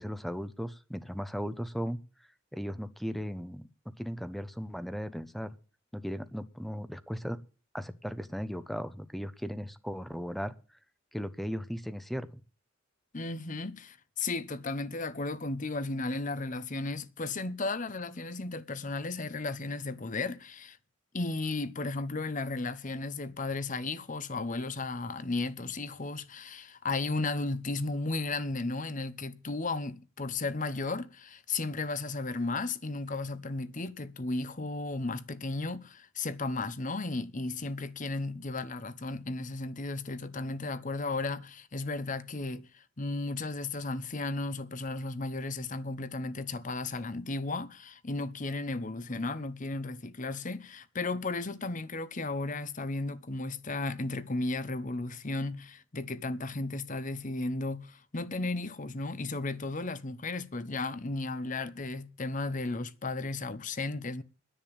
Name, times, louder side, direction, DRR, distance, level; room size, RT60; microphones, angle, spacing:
voice 1, 0.0-2.0 2.5-3.7 4.0-5.5 5.9-7.4 7.7-10.5 11.1-12.3, equal, ahead, 0.8 m, -36 dB
voice 2, 13.1-20.8 21.1-64.2, left 3 dB, 40° left, 0.9 m, -34 dB
10.5 x 9.0 x 8.9 m
head